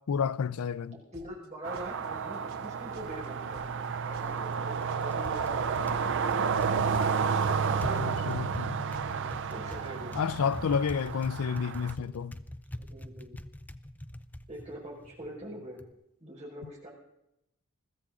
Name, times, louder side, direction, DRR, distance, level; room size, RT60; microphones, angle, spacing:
voice 1, 0.1-1.0 7.9-8.8 10.2-12.3, left 6 dB, 80° left, 0.4 m, -30 dB
voice 2, 1.1-6.0 7.1-8.0 9.1-10.2 12.0-12.1 12.8-13.3 14.5-15.8 16.2-16.9, equal, 30° right, 5.0 m, -44 dB
sound 1, 1.1-1.5 1.7-2.1 2.3-2.7 2.9-3.3 3.5-3.9 4.1-4.5 4.7-5.1 5.3-5.7 5.9-6.3 6.5-6.9 7.1-7.5 7.7-8.1 8.3-8.7 8.9-9.3 9.5-9.9 10.1-10.5, right 1 dB, 90° right, 2.8 m, -54 dB
sound 2, 1.6-11.9, right 6 dB, 55° right, 0.5 m, -31 dB
Typing, 3.5-15.9, left 1 dB, 10° left, 0.5 m, -44 dB
21.5 x 14.5 x 3.7 m
head